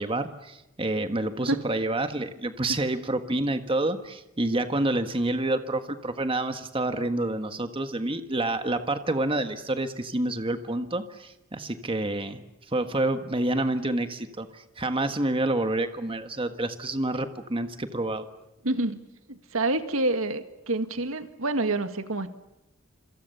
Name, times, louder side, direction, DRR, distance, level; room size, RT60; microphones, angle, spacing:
voice 1, 0.0-12.4 12.7-18.2, right 2 dB, 25° right, 8 dB, 1.6 m, -28 dB
voice 2, 18.6-19.0 19.3-22.3, right 2 dB, 85° right, 9 dB, 1.9 m, -27 dB
27.5 x 26.0 x 7.0 m, 0.89 s
head